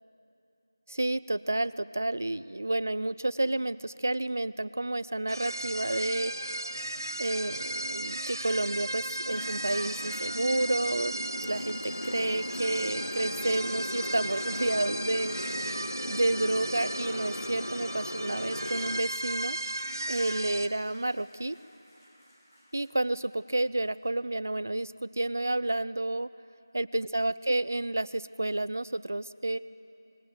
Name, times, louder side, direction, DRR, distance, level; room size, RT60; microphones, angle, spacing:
voice 1, 0.9-6.3 7.2-11.2 11.4-15.4 16.1-19.6 20.1-21.6 22.7-26.3 26.7-29.6, right 2 dB, 40° right, 16 dB, 0.5 m, -30 dB
sound 1, 5.3-20.7, right 1 dB, 65° right, 1.4 m, -36 dB
Motorcycle, 9.3-19.0, left 1 dB, 80° left, 0.8 m, -38 dB
sound 2, 11.2-23.9, equal, 35° left, 6.0 m, -56 dB
28.5 x 20.5 x 7.8 m, 2.8 s
figure-of-eight pair, 180°, 2 cm